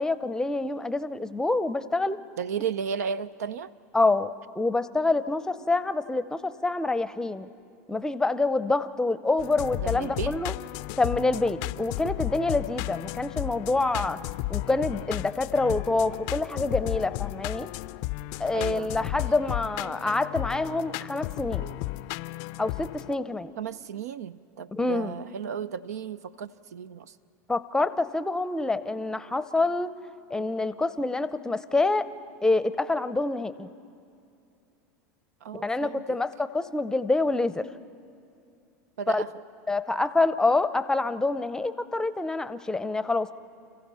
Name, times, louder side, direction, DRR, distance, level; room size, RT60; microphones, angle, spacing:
voice 1, 0.0-2.2 3.9-7.5 7.9-10.5 11.0-14.2 14.5-17.7 18.4-21.7 22.6-23.5 24.7-25.1 27.5-29.9 30.3-32.1 32.4-33.7 35.5-37.7 39.1-39.2 39.7-43.3, left 3 dB, 5° left, 14 dB, 0.7 m, -26 dB
voice 2, 2.4-3.7 9.8-10.4 18.5-19.2 21.6-21.7 23.6-27.1 35.4-36.2 39.0-39.3, right 7 dB, 90° right, 17 dB, 0.5 m, -34 dB
sound 1, 9.4-23.1, left 19 dB, 55° left, 0.4 m, -34 dB
30.0 x 15.5 x 5.6 m, 2.5 s
hypercardioid pair, 110°, 8 cm